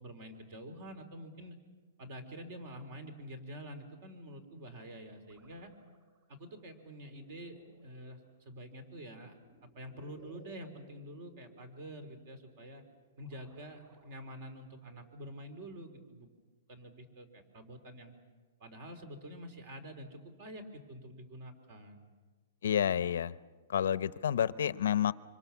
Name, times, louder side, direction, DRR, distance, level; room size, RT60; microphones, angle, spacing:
voice 1, 0.0-1.6 2.0-5.7 6.3-8.2 8.5-9.4 9.6-12.8 13.2-16.3 16.7-18.1 18.6-22.1, equal, 45° right, 9 dB, 3.8 m, -47 dB
sound 1, 4.8-14.9, equal, 20° right, 7.3 m, -63 dB
voice 2, 22.6-23.3 23.7-25.1, left 9 dB, 75° left, 17 dB, 0.7 m, -29 dB
25.5 x 25.5 x 7.2 m, 1.4 s
hypercardioid pair, 165°, 0 cm